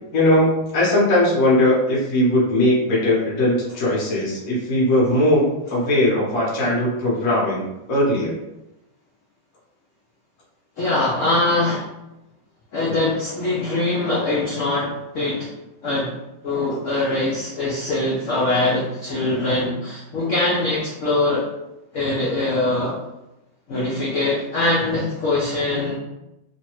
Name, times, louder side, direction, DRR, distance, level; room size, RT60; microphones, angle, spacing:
voice 1, 0.1-8.3, left 1 dB, 55° left, -5 dB, 1.3 m, -19 dB
voice 2, 10.8-11.9 12.7-15.5 15.8-16.1 16.4-21.5 21.9-23.0 23.7-25.9, left 2 dB, 85° left, -4 dB, 0.6 m, -22 dB
3.2 x 2.2 x 2.9 m, 0.91 s
omnidirectional pair, 2.0 m